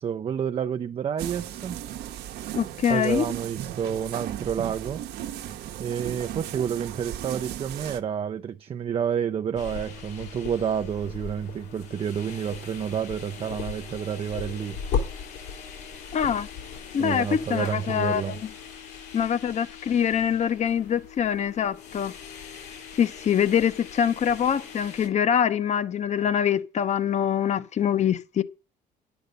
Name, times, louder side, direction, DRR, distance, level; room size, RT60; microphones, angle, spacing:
voice 1, 0.0-1.8 2.9-5.0 5.8-14.8 17.0-18.4, right 8 dB, 35° right, 0.4 m, -29 dB
sound 1, 1.2-8.0, right 11 dB, 75° right, 0.9 m, -36 dB
voice 2, 2.5-3.3 16.1-16.5 16.9-18.5 19.1-22.1 23.0-28.4, left 8 dB, 45° left, 0.8 m, -24 dB
sound 2, 9.6-25.1, left 6 dB, 80° left, 3.5 m, -38 dB
10.5 x 8.0 x 5.3 m
cardioid pair, 110°, 17 cm